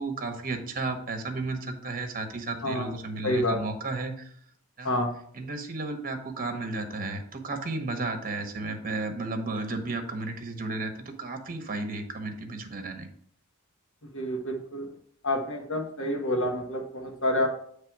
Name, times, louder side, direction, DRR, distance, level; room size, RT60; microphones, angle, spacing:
voice 1, 0.0-4.3 4.8-4.9 5.3-13.1, right 3 dB, 40° right, 6 dB, 1.0 m, -33 dB
voice 2, 3.2-3.6 4.8-5.1 14.1-14.9 15.2-17.5, left 1 dB, 60° left, 3 dB, 1.4 m, -28 dB
9.0 x 3.3 x 4.6 m, 0.64 s
head